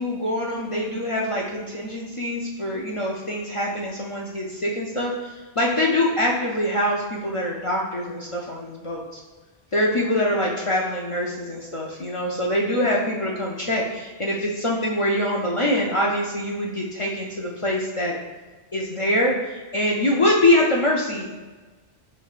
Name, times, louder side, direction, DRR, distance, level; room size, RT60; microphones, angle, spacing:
voice 1, 0.0-9.2 9.7-18.1 18.7-21.3, left 1 dB, 50° left, -3 dB, 0.4 m, -24 dB
5.1 x 3.2 x 2.4 m, 1.3 s
omnidirectional pair, 1.1 m